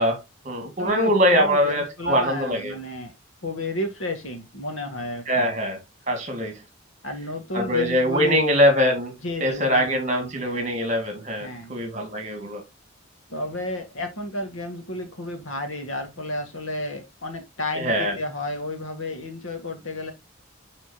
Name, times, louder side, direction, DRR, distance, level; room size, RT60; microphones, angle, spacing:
voice 1, 0.0-2.7 5.3-6.6 7.5-9.1 9.4-12.6 17.8-18.2, equal, 35° right, 2.3 m, -23 dB
voice 2, 0.8-3.1 3.4-5.5 7.0-8.4 9.2-10.7 11.4-11.8 13.3-20.1, left 1 dB, 65° left, 1.9 m, -32 dB
9.7 x 4.3 x 2.9 m
head